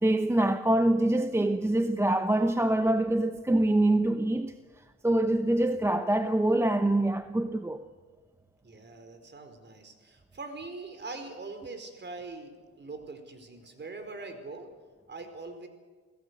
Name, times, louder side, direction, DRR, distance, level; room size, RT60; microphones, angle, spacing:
voice 1, 0.0-4.6 5.0-7.9, right 1 dB, 10° right, 0.9 m, -25 dB
voice 2, 8.6-12.5 12.8-14.7 15.1-15.7, right 3 dB, 35° right, 4.6 m, -42 dB
27.5 x 16.5 x 8.2 m
cardioid pair, 90°, 30 cm